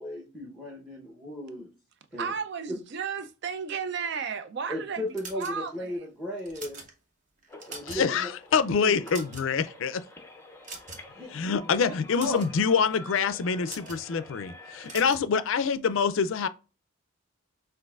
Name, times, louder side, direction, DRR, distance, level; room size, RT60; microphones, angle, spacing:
voice 1, 0.0-1.7 2.1-2.4 2.7-2.8 4.7-6.8 7.7-8.3 8.7-9.0 11.1-11.9 12.2-12.4, left 1 dB, 5° right, 0.8 m, -36 dB
voice 2, 2.2-5.0 5.4-5.7, right 6 dB, 50° right, 0.4 m, -33 dB
sound 1, 5.1-5.9 6.4-6.9 7.4-8.1 8.4-8.6 8.9-9.7 10.6-11.2 11.9-12.5 13.6-14.0 14.8-15.3, right 3 dB, 35° right, 0.9 m, -42 dB
sound 2, 7.5-15.1, left 2 dB, 10° left, 0.5 m, -48 dB
voice 3, 7.8-10.0 11.3-16.5, left 6 dB, 65° left, 0.4 m, -26 dB
6.2 x 2.5 x 2.4 m
head